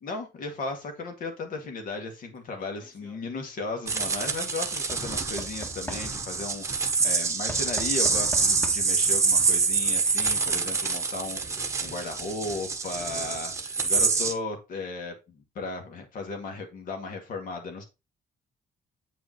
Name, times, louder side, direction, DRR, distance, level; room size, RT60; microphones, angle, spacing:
voice 1, 0.0-17.8, left 3 dB, 60° left, 4 dB, 2.3 m, -36 dB
Knock / Wood, 2.7-3.2 4.9-6.4 7.5-9.1 10.1-10.2 10.4-10.5, equal, 10° left, 1.5 m, -41 dB
sound 1, 3.9-14.3, right 4 dB, 20° right, 1.1 m, -26 dB
8.7 x 5.2 x 3.1 m, 0.26 s
cardioid pair, 165°, 16 cm